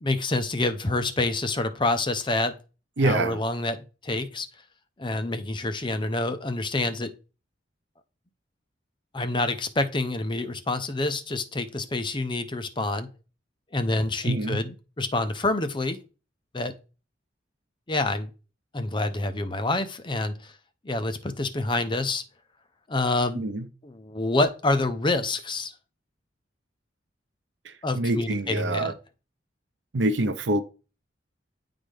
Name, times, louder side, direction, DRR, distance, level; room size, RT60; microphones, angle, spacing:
voice 1, 0.0-2.5 3.0-4.5 5.0-7.1 9.1-13.1 13.7-14.7 15.0-16.0 16.5-16.7 17.9-18.3 18.7-20.3 20.8-22.2 22.9-23.4 23.8-25.7 27.8-28.9, left 2 dB, 25° left, 0.7 m, -27 dB
voice 2, 3.0-3.4 14.2-14.6 23.3-23.7 27.6-28.9 29.9-30.6, right 2 dB, 70° right, 0.7 m, -26 dB
9.9 x 3.9 x 3.3 m
head